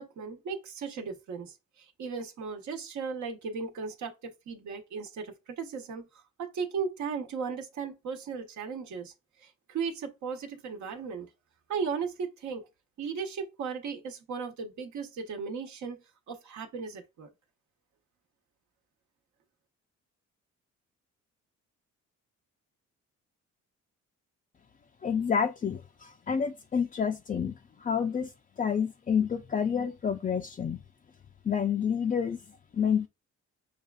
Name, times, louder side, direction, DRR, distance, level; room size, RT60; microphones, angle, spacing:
voice 1, 0.0-6.1 6.4-9.1 9.4-11.3 11.7-12.6 13.0-16.0 16.3-17.3, right 5 dB, 70° right, 1.0 m, -36 dB
voice 2, 25.0-30.8 31.4-33.1, left 7 dB, 25° left, 0.4 m, -29 dB
6.4 x 2.4 x 2.3 m
cardioid pair, 90°, 30 cm